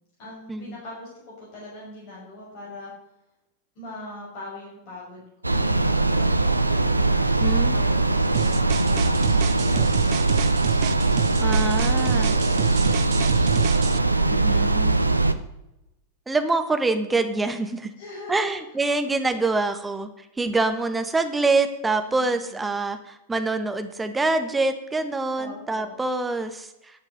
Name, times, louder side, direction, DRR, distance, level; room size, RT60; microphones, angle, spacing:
voice 1, 0.2-1.1 1.4-2.9 3.8-10.5 11.5-13.2 13.7-14.7 18.0-18.6 22.1-22.7 25.4-25.9, left 2 dB, 45° left, -5 dB, 5.8 m, -42 dB
sound 1, 5.4-15.3, right 2 dB, 85° right, 0.7 m, -21 dB
voice 2, 7.4-7.8 11.4-12.3 14.3-15.1 16.3-17.9 18.3-20.1 20.4-26.7, right 3 dB, 10° right, 8 dB, 1.5 m, -25 dB
sound 2, 8.3-14.0, right 16 dB, 45° right, 0.4 m, -30 dB
11.0 x 8.1 x 7.8 m, 0.88 s
figure-of-eight pair, 90°, 0 cm